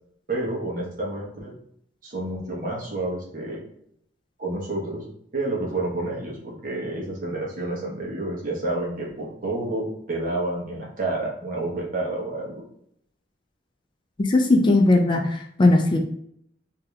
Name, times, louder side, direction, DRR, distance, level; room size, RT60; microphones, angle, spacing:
voice 1, 0.3-1.5 2.0-3.6 4.4-5.0 5.3-12.6, right 2 dB, 50° right, -3 dB, 1.1 m, -29 dB
voice 2, 14.2-16.0, left 2 dB, 25° left, 3 dB, 0.4 m, -18 dB
4.9 x 2.8 x 2.4 m, 0.70 s
head